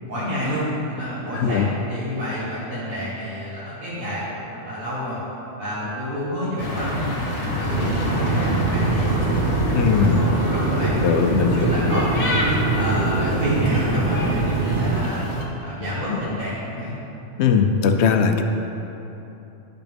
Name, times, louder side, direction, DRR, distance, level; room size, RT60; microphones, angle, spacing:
voice 1, 0.0-5.2 5.6-10.9 11.3-12.4 12.7-15.2 15.6-17.0, equal, 80° right, -10 dB, 1.8 m, -29 dB
voice 2, 1.3-1.7 9.7-10.2 11.0-12.0 17.4-18.4, left 6 dB, 65° left, 5 dB, 0.8 m, -19 dB
sound 1, 6.6-15.4, left 1 dB, 45° left, 1.1 m, -27 dB
sound 2, 7.7-15.0, right 4 dB, 45° right, 0.9 m, -24 dB
10.0 x 6.0 x 3.5 m, 3.0 s
omnidirectional pair, 1.4 m